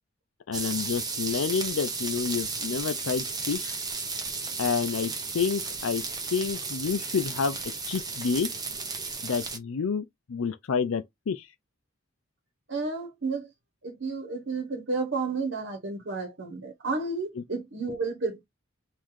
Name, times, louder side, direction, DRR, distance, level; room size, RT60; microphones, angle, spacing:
voice 1, 0.5-3.7 4.6-6.0 6.3-7.6 7.9-8.5 9.2-11.5 17.3-17.4, left 6 dB, 75° left, 0.5 m, -29 dB
sound 1, 0.5-9.6, right 4 dB, 20° right, 0.7 m, -34 dB
voice 2, 12.7-13.5 13.8-18.5, right 3 dB, 55° right, 1.1 m, -31 dB
3.8 x 2.6 x 4.7 m
head